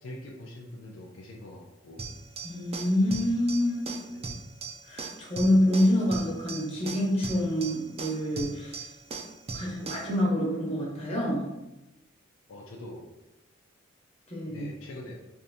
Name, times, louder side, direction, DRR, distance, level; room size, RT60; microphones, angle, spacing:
voice 1, 0.0-2.2 4.1-4.3 9.5-10.1 12.5-13.1 14.5-15.2, left 1 dB, 80° left, 0 dB, 0.4 m, -44 dB
sound 1, 2.0-10.1, right 4 dB, 30° right, 0.3 m, -39 dB
voice 2, 2.4-3.9 4.8-8.8 9.5-11.5 14.3-14.6, left 1 dB, 30° left, -4 dB, 0.9 m, -26 dB
3.5 x 2.5 x 2.7 m, 0.95 s
head